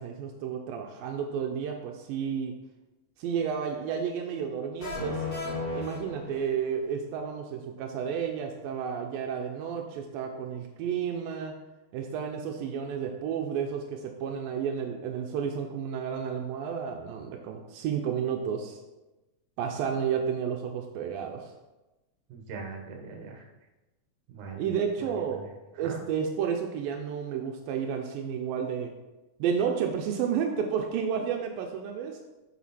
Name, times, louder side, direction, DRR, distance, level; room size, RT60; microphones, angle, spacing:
voice 1, 0.0-2.5 3.2-5.3 5.7-11.6 11.9-18.8 19.6-21.5 24.6-25.4 25.8-28.9 29.4-32.2, right 7 dB, 85° right, 3 dB, 2.4 m, -31 dB
sound 1, 4.8-6.8, left 3 dB, 40° left, 3.0 m, -34 dB
voice 2, 22.3-23.4 24.3-24.6 25.0-25.5 25.8-26.0, right 5 dB, 70° right, 2 dB, 2.6 m, -41 dB
7.3 x 6.5 x 4.2 m, 1.1 s
omnidirectional pair, 4.0 m